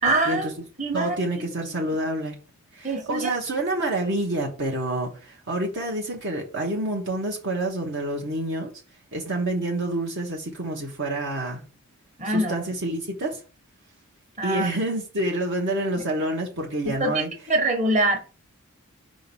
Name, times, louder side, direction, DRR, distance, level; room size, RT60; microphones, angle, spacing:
voice 1, 0.0-0.5 0.8-1.2 2.8-3.3 12.2-12.6 14.4-14.7 15.9-16.0 16.8-18.2, right 2 dB, 35° right, 1.5 m, -24 dB
voice 2, 0.9-2.4 2.7-8.7 9.1-11.6 12.2-13.4 14.4-17.3, right 1 dB, 55° right, 1.2 m, -28 dB
5.2 x 3.8 x 5.5 m
head